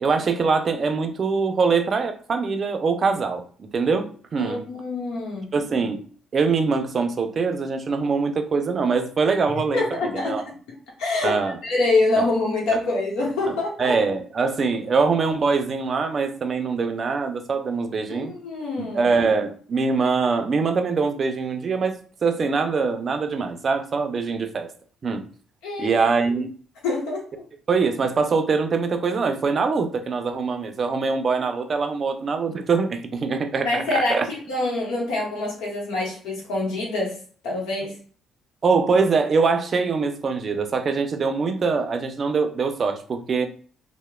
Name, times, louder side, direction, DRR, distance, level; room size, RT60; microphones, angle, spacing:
voice 1, 0.0-4.6 5.5-6.0 6.3-9.8 10.2-10.4 11.2-11.6 12.2-12.3 13.8-18.3 18.8-24.7 25.0-25.2 25.8-26.5 27.7-34.3 38.6-43.5, right 4 dB, 45° right, 0.4 m, -23 dB
voice 2, 4.4-5.5 9.7-10.4 11.0-11.3 11.6-14.0 18.1-19.0 25.6-26.0 26.8-27.2 33.6-37.2 37.4-38.0, left 2 dB, 80° left, 0.9 m, -25 dB
2.9 x 2.0 x 2.2 m
supercardioid pair, 65°, 0 cm